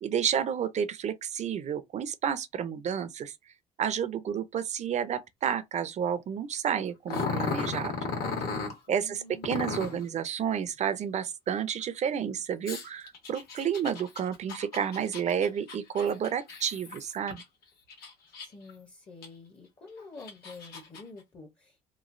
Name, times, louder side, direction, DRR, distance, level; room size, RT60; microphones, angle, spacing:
voice 1, 0.0-3.3 3.8-7.9 8.9-17.4, right 8 dB, 45° right, 0.5 m, -30 dB
Growling, 7.1-8.8 9.4-10.0 12.7-17.4 17.9-18.7 19.2-19.3 20.0-21.0, left 4 dB, 65° left, 1.3 m, -35 dB
voice 2, 8.9-9.8 18.4-21.8, left 2 dB, 30° left, 0.8 m, -48 dB
3.1 x 2.3 x 2.5 m
cardioid pair, 110°, 17 cm